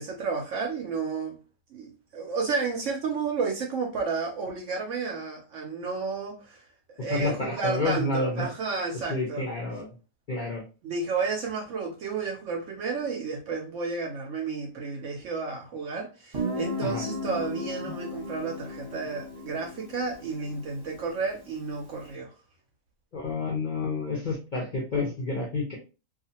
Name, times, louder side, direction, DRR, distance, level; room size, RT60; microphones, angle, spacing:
voice 1, 0.0-1.4 1.7-6.6 6.9-9.5 10.8-22.3, right 4 dB, 65° right, 0.7 m, -32 dB
voice 2, 7.0-8.5 9.1-9.9 10.3-10.6 16.8-17.0 23.1-25.8, left 3 dB, 60° left, 0.5 m, -29 dB
Guitar, 16.3-21.9, left 1 dB, 30° right, 0.8 m, -36 dB
2.4 x 2.4 x 2.7 m
omnidirectional pair, 1.7 m